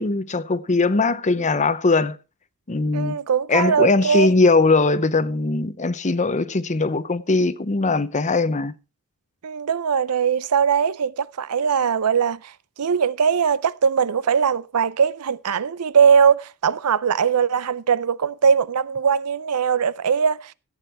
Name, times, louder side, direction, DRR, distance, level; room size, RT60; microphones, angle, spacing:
voice 1, 0.0-2.2 2.7-3.2 3.5-8.7, left 3 dB, 35° left, 0.8 m, -20 dB
voice 2, 2.9-4.3 9.4-12.5 12.8-20.5, right 6 dB, 85° right, 0.6 m, -20 dB
15.0 x 8.9 x 4.4 m
head